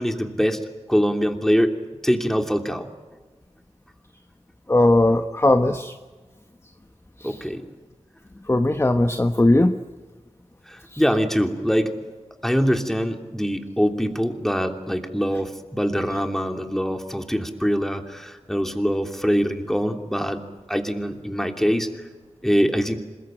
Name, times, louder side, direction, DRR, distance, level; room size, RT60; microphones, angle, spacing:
voice 1, 0.0-2.9 7.2-7.6 10.7-12.0 12.4-20.4 20.7-22.0 22.4-22.9, equal, 5° left, 5 dB, 3.0 m, -23 dB
voice 2, 4.7-5.9 8.5-9.7, left 1 dB, 20° left, 6 dB, 1.2 m, -18 dB
26.5 x 21.5 x 9.1 m, 1.3 s
wide cardioid pair, 65°, 12 cm